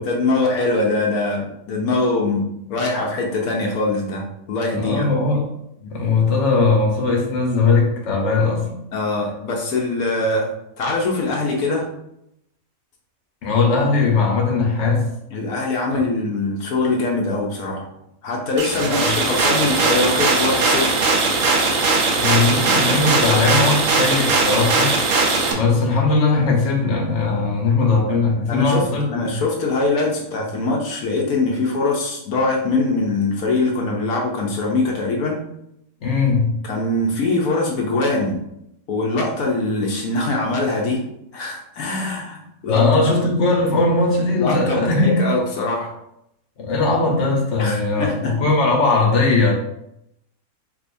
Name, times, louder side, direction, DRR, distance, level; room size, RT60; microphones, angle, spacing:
voice 1, 0.0-5.1 5.8-6.0 8.9-10.5 10.8-11.9 15.3-17.9 18.2-21.0 28.5-35.4 36.6-38.4 38.9-41.0 41.3-43.0 44.4-45.9 47.6-48.4, left 2 dB, 80° left, -1 dB, 1.2 m, -22 dB
voice 2, 4.7-5.4 5.9-8.7 13.4-15.1 15.9-16.0 18.8-19.1 22.1-25.0 25.5-29.4 36.0-36.6 42.7-45.2 46.6-49.5, left 3 dB, 55° left, 0 dB, 1.2 m, -19 dB
sound 1, 18.6-25.5, right 3 dB, 75° right, 1.2 m, -19 dB
4.8 x 2.9 x 2.6 m, 0.79 s
omnidirectional pair, 1.5 m